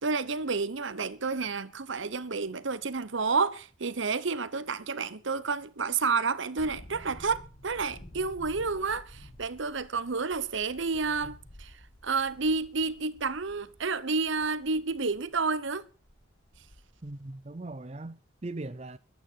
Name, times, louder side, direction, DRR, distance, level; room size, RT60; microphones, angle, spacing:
voice 1, 0.0-11.7 12.0-15.8, right 4 dB, 65° right, 0.9 m, -30 dB
sound 1, 6.6-15.4 15.7-15.8 16.0-17.1 17.3-17.4, equal, 60° left, 6.7 m, -51 dB
voice 2, 17.0-19.0, right 2 dB, 30° right, 0.6 m, -39 dB
21.5 x 9.1 x 4.6 m
head